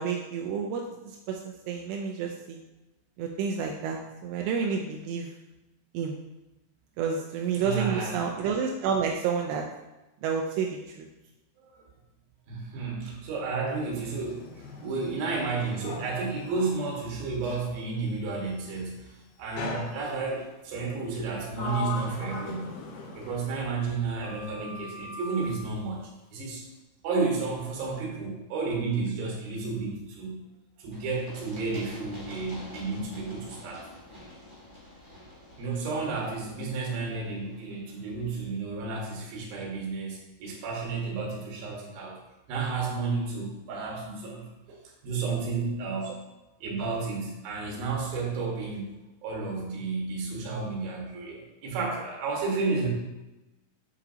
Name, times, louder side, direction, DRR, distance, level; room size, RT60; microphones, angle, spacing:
voice 1, 0.0-2.6 3.2-5.3 5.9-6.1 7.0-9.6 10.2-11.1, right 6 dB, 85° right, 1 dB, 2.5 m, -30 dB
voice 2, 7.5-8.2 11.6-11.8 12.5-22.8 23.2-26.6 27.0-30.5 30.8-33.8 35.6-42.2 42.5-46.2 46.6-48.9 49.2-52.9, right 4 dB, 60° right, -2 dB, 3.0 m, -32 dB
Sliding door, 13.7-17.8 19.6-20.5 21.1-24.0 24.2-25.6, left 3 dB, 70° left, 2.6 m, -40 dB
Run, 30.9-38.5, left 1 dB, 25° right, 0.6 m, -48 dB
8.4 x 6.7 x 2.8 m, 1.0 s
omnidirectional pair, 5.4 m